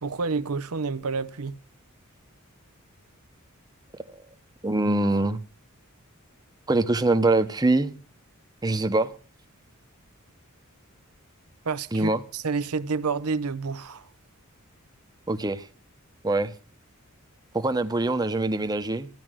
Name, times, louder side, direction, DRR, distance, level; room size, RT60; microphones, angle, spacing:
voice 1, 0.0-1.5 11.6-14.1, right 4 dB, 90° right, 0.8 m, -29 dB
voice 2, 4.6-5.4 6.7-7.9 8.6-9.1 11.9-12.2 15.3-15.7 16.2-16.5 17.5-19.1, right 2 dB, 20° right, 0.9 m, -23 dB
14.0 x 10.0 x 6.3 m
head